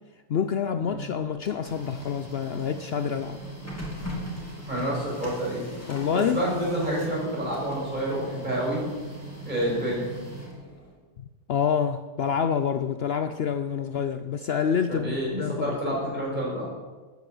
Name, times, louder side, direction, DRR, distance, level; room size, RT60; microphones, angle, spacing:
voice 1, 0.3-3.4 5.9-6.4 11.2-16.0, left 7 dB, 60° left, 9 dB, 0.8 m, -27 dB
Printer, 1.2-10.9, right 1 dB, 10° left, 3.3 m, -39 dB
voice 2, 4.7-5.6 6.1-8.8 9.4-10.1 14.9-16.7, right 1 dB, 35° right, -5 dB, 6.2 m, -28 dB
13.0 x 9.5 x 7.8 m, 1.3 s
omnidirectional pair, 1.3 m